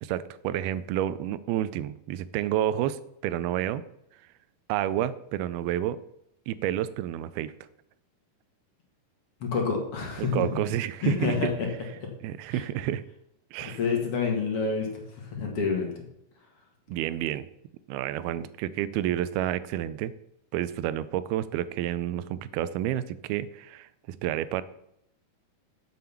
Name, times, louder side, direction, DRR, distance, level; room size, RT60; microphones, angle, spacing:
voice 1, 0.0-3.8 4.7-6.0 6.5-7.5 10.2-11.5 12.2-13.0 13.5-13.8 16.9-17.5 17.9-20.1 20.5-24.6, right 12 dB, 85° right, 16 dB, 2.5 m, -30 dB
voice 2, 9.4-10.4 11.0-11.7 12.0-12.1 12.5-12.6 13.6-15.9, left 5 dB, 45° left, 0 dB, 2.3 m, -28 dB
7.6 x 7.6 x 7.1 m, 0.81 s
omnidirectional pair, 4.4 m